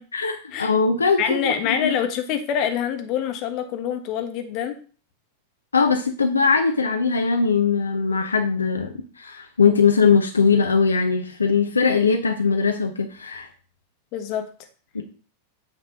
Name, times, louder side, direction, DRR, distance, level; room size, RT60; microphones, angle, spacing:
voice 1, 0.1-1.5 1.8-1.9 5.7-13.5 14.9-15.0, left 5 dB, 75° left, 4 dB, 0.6 m, -20 dB
voice 2, 1.2-4.8 14.1-14.5, left 8 dB, 40° left, 7 dB, 1.2 m, -25 dB
8.2 x 3.4 x 5.2 m, 0.40 s
figure-of-eight pair, 90°, 0 cm